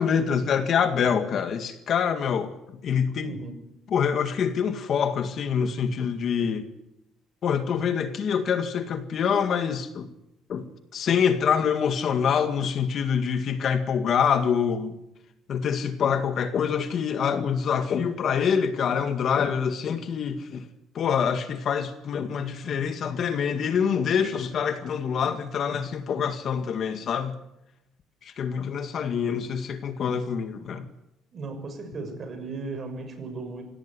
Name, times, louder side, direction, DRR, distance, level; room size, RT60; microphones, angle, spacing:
voice 1, 0.0-3.4 3.9-6.7 7.4-10.1 10.5-15.0 15.5-20.7 20.9-27.4 28.2-30.9, left 7 dB, 45° left, 2.0 m, -25 dB
voice 2, 3.2-3.6 31.3-33.6, right 3 dB, 35° right, 6.8 m, -36 dB
26.5 x 17.5 x 9.8 m
cardioid pair, 150°, 0 cm